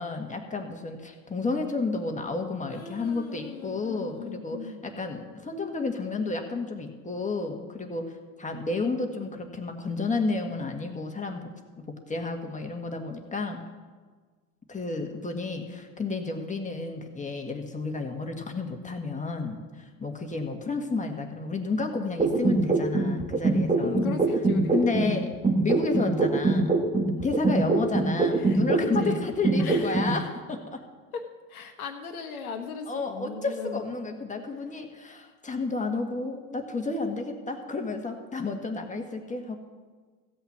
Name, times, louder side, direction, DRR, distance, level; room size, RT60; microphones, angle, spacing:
voice 1, 0.0-11.5 11.9-13.6 14.7-24.0 24.7-25.3 25.6-26.7 27.2-30.8 32.9-39.6, left 3 dB, 15° left, 3 dB, 1.8 m, -31 dB
voice 2, 2.7-4.8 23.8-24.9 28.4-29.2 29.6-30.2 31.1-31.2 31.5-33.9, left 6 dB, 90° left, 4 dB, 1.4 m, -38 dB
sound 1, 22.2-25.1 25.4-29.1 29.4-30.1, right 3 dB, 15° right, 1.5 m, -23 dB
15.5 x 5.6 x 8.7 m, 1.5 s
hypercardioid pair, 85°, 42 cm